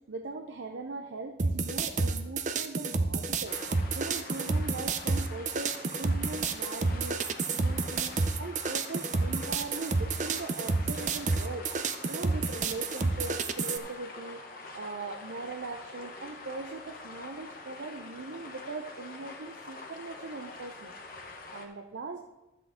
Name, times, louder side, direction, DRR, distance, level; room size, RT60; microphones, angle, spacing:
voice 1, 0.1-11.7 12.1-14.4 14.7-22.2, right 3 dB, 85° right, 5 dB, 0.7 m, -40 dB
sound 1, 1.4-13.8, right 4 dB, 40° right, 0.5 m, -30 dB
sound 2, 3.4-21.7, left 3 dB, 50° left, 1.0 m, -45 dB
12.0 x 7.7 x 3.7 m, 0.99 s
head